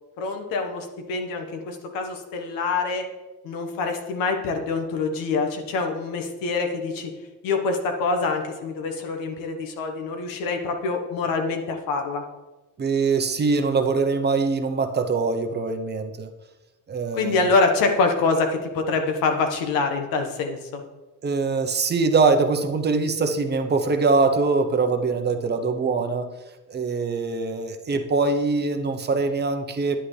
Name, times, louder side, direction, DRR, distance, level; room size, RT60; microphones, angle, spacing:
voice 1, 0.2-3.1 3.4-7.1 7.4-12.2 17.1-20.8, left 4 dB, 85° left, 4 dB, 1.4 m, -25 dB
voice 2, 12.8-16.3 16.9-17.5 21.2-26.3 26.7-30.0, right 4 dB, 30° right, 7 dB, 0.8 m, -23 dB
9.9 x 8.7 x 3.3 m, 1.1 s
cardioid pair, 110°, 33 cm